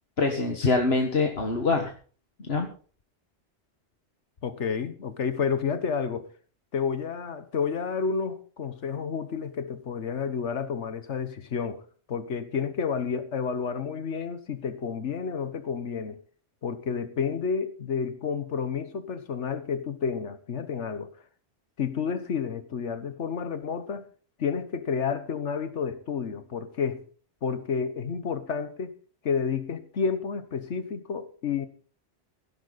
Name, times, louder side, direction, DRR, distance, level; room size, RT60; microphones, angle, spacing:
voice 1, 0.2-1.9 2.4-2.7, left 3 dB, 60° left, 1.9 m, -24 dB
voice 2, 4.4-6.3 6.7-11.8 12.1-16.2 16.6-21.1 21.8-24.1 24.4-27.0 27.4-28.9 29.2-31.7, left 6 dB, 80° left, 1.5 m, -30 dB
16.0 x 11.5 x 4.1 m
omnidirectional pair, 1.2 m